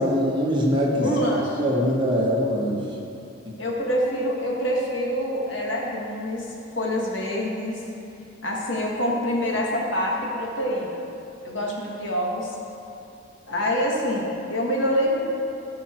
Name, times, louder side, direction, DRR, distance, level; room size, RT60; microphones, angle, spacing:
voice 1, 0.0-1.1 1.6-2.8, equal, 25° right, -3 dB, 1.5 m, -22 dB
voice 2, 1.0-1.6 3.6-7.8 8.4-11.1 11.4-12.6 13.5-15.2, equal, 80° left, -2 dB, 1.7 m, -26 dB
13.0 x 5.8 x 4.5 m, 2.7 s
head